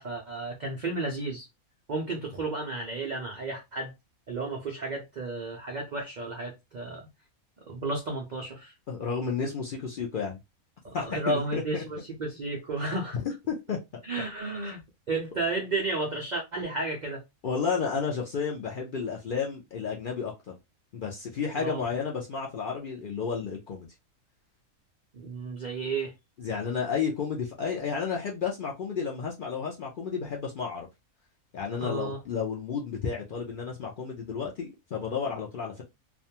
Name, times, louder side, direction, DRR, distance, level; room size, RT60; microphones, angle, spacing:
voice 1, 0.0-1.4 1.9-3.9 4.3-7.0 7.7-8.7 10.8-13.2 14.0-14.8 15.1-17.2 21.5-21.8 25.1-26.1 31.8-32.2, right 2 dB, 90° right, 0.4 m, -32 dB
voice 2, 8.9-10.4 10.9-11.8 12.8-13.8 17.4-20.5 20.9-23.9 26.4-30.9 31.5-35.8, left 6 dB, 75° left, 0.4 m, -32 dB
2.5 x 2.2 x 2.7 m
omnidirectional pair, 1.5 m